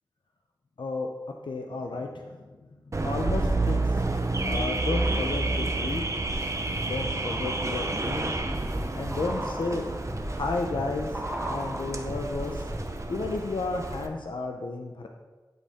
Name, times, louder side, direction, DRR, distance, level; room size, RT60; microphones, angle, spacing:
voice 1, 0.8-1.1 1.4-2.5 3.0-3.9 4.4-6.1 6.9-8.4 8.9-9.9 10.3-11.1 11.4-12.7 13.1-15.1, left 3 dB, 85° left, 2 dB, 0.6 m, -32 dB
Car / Alarm, 2.9-14.1, right 2 dB, 40° right, 0.7 m, -30 dB
sound 1, 5.5-13.2 13.4-13.5, equal, 25° right, 1.4 m, -38 dB
10.5 x 4.4 x 3.5 m, 1.2 s
wide cardioid pair, 55°, 8 cm